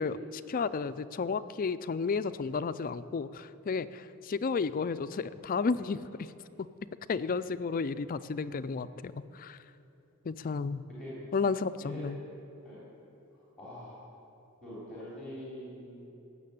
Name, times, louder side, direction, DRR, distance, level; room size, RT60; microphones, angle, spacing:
voice 1, 0.0-6.3 7.1-9.6 10.2-10.8 11.3-12.2, left 4 dB, 40° left, 14 dB, 0.4 m, -32 dB
voice 2, 13.3-14.0 14.6-16.1, equal, 5° left, -9 dB, 3.8 m, -44 dB
16.5 x 6.7 x 8.6 m, 2.9 s
head